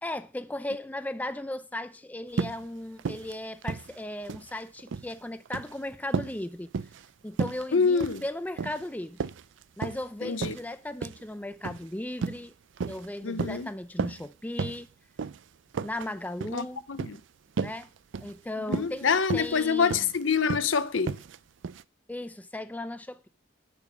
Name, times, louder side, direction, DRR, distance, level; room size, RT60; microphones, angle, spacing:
voice 1, 0.0-6.7 7.2-9.3 9.8-12.5 12.9-14.9 15.8-16.9 17.6-17.9 18.2-20.1 22.1-23.3, left 1 dB, 10° left, 0.5 m, -36 dB
sound 1, 2.3-2.6 3.0-3.3 3.6-4.5 4.8-5.1 5.5-5.7 6.1-6.4 6.7-7.1 7.4-7.6 8.0-8.3 8.6-8.8 9.2-10.0 10.4-10.6 11.0-11.2 11.6-11.8 12.2-12.4 12.8-13.1 13.4-13.6 14.0-14.3 14.6-14.8 15.2-15.4 15.7-16.1 16.4-16.6 17.0-17.2 17.6-17.8 18.1-18.3 18.7-19.0 19.3-19.6 19.9-20.2 20.5-20.7 21.1-21.4 21.6-21.8, right 5 dB, 70° right, 0.4 m, -33 dB
voice 2, 7.7-8.2 10.2-10.5 13.2-13.7 16.5-17.2 18.7-21.2, left 5 dB, 75° left, 0.7 m, -26 dB
8.6 x 6.9 x 6.0 m
head